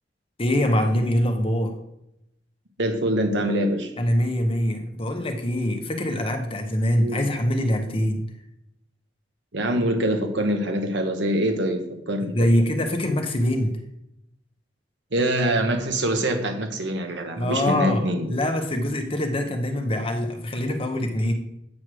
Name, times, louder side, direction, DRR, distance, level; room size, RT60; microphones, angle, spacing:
voice 1, 0.4-1.7 4.0-8.3 12.2-13.8 17.4-21.3, left 1 dB, 30° left, 5 dB, 0.9 m, -24 dB
voice 2, 2.8-3.9 7.0-7.2 9.5-11.8 12.1-12.5 15.1-18.3, right 1 dB, 70° right, 5 dB, 1.1 m, -24 dB
8.6 x 3.1 x 6.2 m, 0.82 s
head